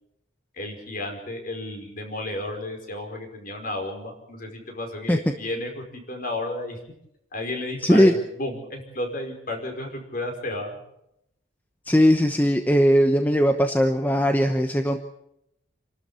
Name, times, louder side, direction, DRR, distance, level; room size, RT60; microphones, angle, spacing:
voice 1, 0.5-6.8 7.3-10.8, left 1 dB, 45° left, 4 dB, 5.1 m, -32 dB
voice 2, 7.8-8.1 11.9-15.0, equal, 10° left, 5 dB, 1.0 m, -19 dB
28.0 x 12.5 x 8.5 m, 0.80 s
head